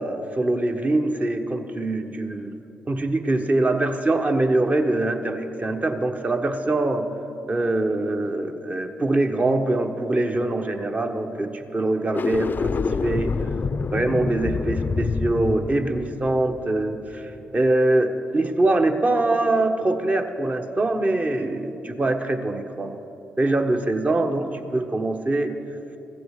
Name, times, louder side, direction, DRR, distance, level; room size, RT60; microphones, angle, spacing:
voice 1, 0.0-2.5 2.9-7.1 7.5-13.3 13.9-23.0 23.4-25.5, right 2 dB, 30° right, 5 dB, 1.2 m, -23 dB
sound 1, 12.0-17.3, left 4 dB, 45° left, 0.5 m, -27 dB
15.0 x 7.8 x 6.6 m, 2.9 s
supercardioid pair, 45°, 4 cm